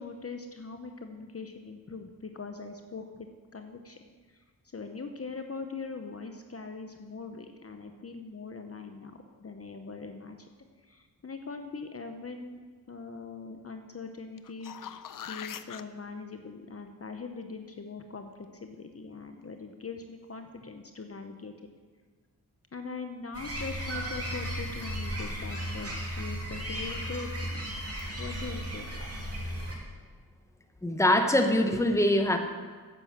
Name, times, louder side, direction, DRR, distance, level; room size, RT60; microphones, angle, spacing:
voice 1, 0.0-3.3 3.5-4.0 4.3-4.4 4.7-10.5 10.8-15.0 15.2-21.7 22.7-27.8 28.2-28.9, left 4 dB, 40° left, 5 dB, 0.9 m, -41 dB
sound 1, 14.4-15.8 20.6-20.7, left 9 dB, 60° left, 0.6 m, -41 dB
sound 2, 23.3-29.8, equal, 40° right, 2.5 m, -35 dB
voice 2, 30.8-32.4, left 1 dB, 10° left, 6 dB, 1.1 m, -23 dB
9.3 x 7.7 x 7.3 m, 1.5 s
cardioid pair, 60°, 38 cm